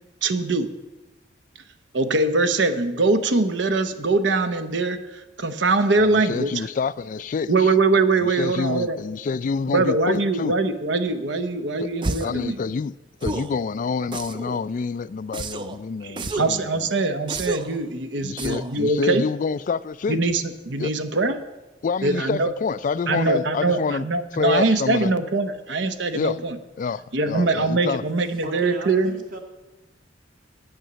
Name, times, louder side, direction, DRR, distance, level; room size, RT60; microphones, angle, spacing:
voice 1, 0.2-0.7 1.9-6.7 7.5-9.0 9.7-12.6 16.0-19.2 20.1-21.4 22.0-22.5 23.1-26.6 27.1-29.1, right 3 dB, 70° right, 10 dB, 0.9 m, -22 dB
voice 2, 6.0-7.7 8.2-10.5 11.8-11.9 12.2-13.0 13.2-16.9 18.2-20.2 20.8-20.9 21.8-24.1 24.3-25.1 26.1-26.4 26.8-28.0, left 5 dB, 45° left, 17 dB, 0.3 m, -27 dB
sound 1, 12.0-12.4 13.2-13.6 14.1-14.6 15.3-15.8 16.2-16.6 17.3-17.8 18.4-18.8, right 2 dB, 25° right, 0.4 m, -30 dB
voice 3, 28.4-29.4, right 2 dB, 50° right, 2 dB, 1.8 m, -35 dB
9.0 x 8.8 x 6.9 m, 1.1 s
head